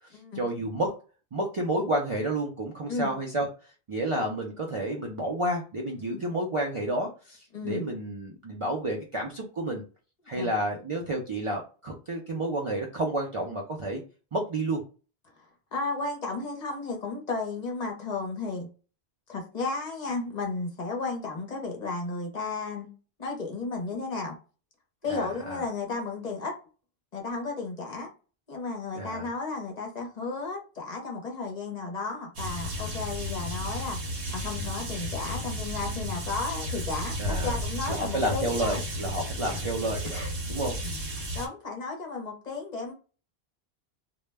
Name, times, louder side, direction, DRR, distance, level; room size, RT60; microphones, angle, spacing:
voice 1, 0.0-0.9 1.3-3.5 3.9-9.8 10.3-14.0 14.3-14.8 25.1-25.6 28.9-29.3 37.2-37.5 37.9-40.8, right 1 dB, 50° right, 0.4 m, -30 dB
voice 2, 7.5-7.9 10.4-10.5 15.7-18.7 19.3-22.9 23.2-24.4 25.0-26.5 27.1-28.1 28.5-34.0 34.3-37.2 37.4-38.8 40.8-40.9 41.3-42.9, left 3 dB, 45° left, 0.7 m, -33 dB
sound 1, 32.4-41.5, equal, 65° right, 0.9 m, -33 dB
2.1 x 2.0 x 3.2 m
omnidirectional pair, 1.1 m